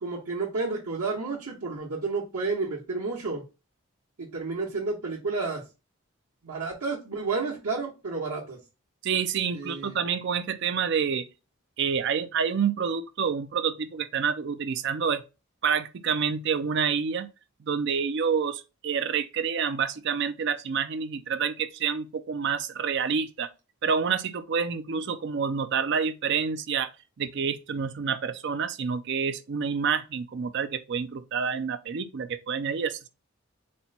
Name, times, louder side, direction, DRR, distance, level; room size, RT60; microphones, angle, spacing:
voice 1, 0.0-3.4 4.2-5.6 6.4-8.6 9.5-9.9, right 4 dB, 85° right, 1.0 m, -31 dB
voice 2, 9.0-11.3 11.8-15.2 15.6-17.3 17.7-23.5 23.8-26.9 27.2-33.1, right 6 dB, 55° right, 0.4 m, -28 dB
4.3 x 2.2 x 4.0 m
head